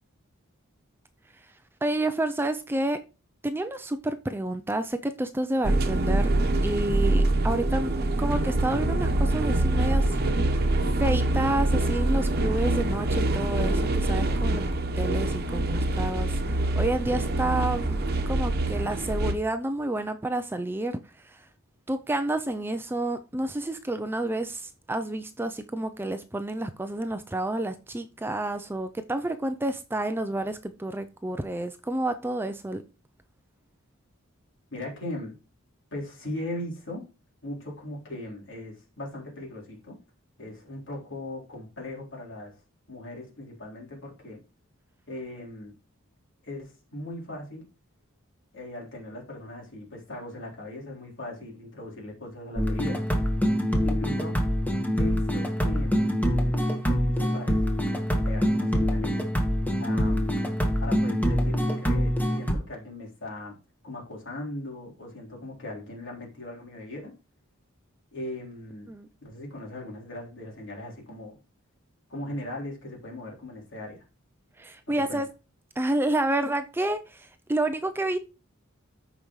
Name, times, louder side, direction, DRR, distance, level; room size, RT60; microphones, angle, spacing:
voice 1, 1.8-3.0 3.4-6.3 6.6-7.9 8.2-10.6 11.0-14.7 15.0-21.0 21.2-21.4 21.9-32.8 68.9-69.1 74.6-75.3 75.8-78.2, right 1 dB, 10° right, 0.4 m, -29 dB
sound 1, 5.6-19.3, right 2 dB, 50° right, 1.0 m, -25 dB
voice 2, 34.7-35.4 35.9-37.0 37.4-40.0 40.4-42.5 42.9-44.4 45.1-45.7 46.4-47.7 48.5-53.0 53.8-54.4 54.9-56.2 56.9-57.6 58.1-59.2 59.8-63.5 63.8-67.1 68.1-68.9 69.2-71.4 72.1-74.0 75.1-75.2, left 1 dB, 60° left, 3.7 m, -39 dB
sound 2, 52.6-62.5, equal, 10° left, 1.3 m, -25 dB
13.5 x 5.1 x 3.1 m
head